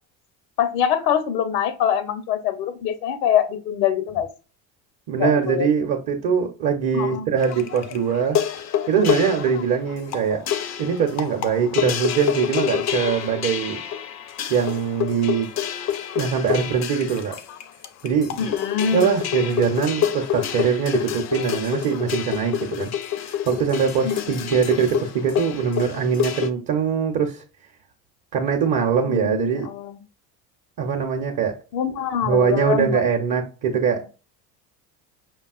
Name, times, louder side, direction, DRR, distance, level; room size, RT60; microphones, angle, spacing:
voice 1, 0.6-4.3 5.2-5.7 6.9-7.3 18.4-19.1 24.0-24.4 29.1-29.9 31.7-33.0, left 8 dB, 75° left, 0.8 m, -24 dB
voice 2, 5.1-8.4 8.9-10.4 10.8-13.8 14.5-15.5 16.1-17.4 18.0-18.5 18.9-22.9 23.2-27.4 28.3-29.7 30.8-31.6 32.2-34.1, right 6 dB, 45° right, 0.7 m, -22 dB
sound 1, 7.4-26.5, left 10 dB, 35° left, 0.5 m, -28 dB
5.2 x 2.3 x 2.3 m
hypercardioid pair, 65°, 49 cm